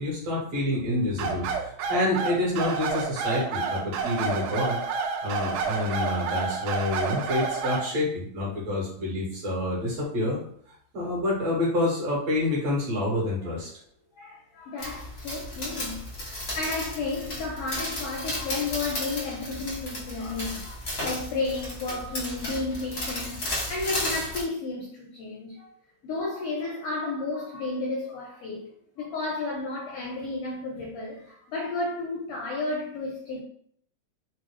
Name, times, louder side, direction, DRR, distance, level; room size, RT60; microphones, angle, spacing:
voice 1, 0.0-4.8 5.2-10.4 10.9-13.7, left 2 dB, 65° right, 2.2 m, -28 dB
sound 1, 1.2-7.9, right 5 dB, 90° right, 2.1 m, -29 dB
voice 2, 14.2-23.4 23.7-25.7 26.0-28.7 29.0-33.4, left 3 dB, 80° left, 1.3 m, -32 dB
sound 2, 14.8-24.4, left 1 dB, 65° left, 0.6 m, -34 dB
4.8 x 2.1 x 3.1 m
omnidirectional pair, 3.4 m